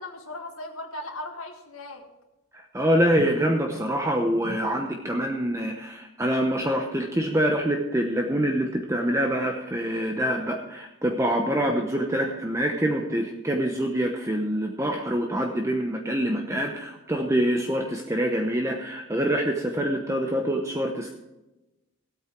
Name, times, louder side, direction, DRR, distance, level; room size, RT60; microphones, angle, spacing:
voice 1, 0.0-2.0, left 2 dB, 70° left, 1 dB, 1.8 m, -37 dB
voice 2, 2.5-21.1, equal, 15° right, 2 dB, 0.9 m, -25 dB
16.5 x 8.8 x 4.6 m, 1.0 s
head